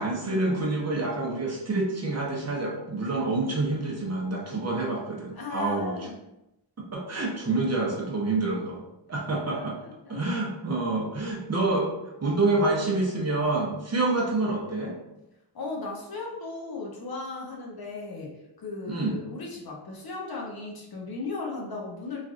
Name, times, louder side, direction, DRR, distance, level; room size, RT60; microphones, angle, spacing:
voice 1, 0.0-6.1 6.9-8.8 9.1-9.8 10.1-11.9 12.2-15.0 18.9-19.2, right 2 dB, 35° right, -2 dB, 0.6 m, -27 dB
voice 2, 5.3-6.2 9.5-10.2 15.5-18.3 18.6-22.2, left 3 dB, 50° left, -2 dB, 0.8 m, -36 dB
3.2 x 2.5 x 2.4 m, 0.90 s
wide cardioid pair, 85°, 47 cm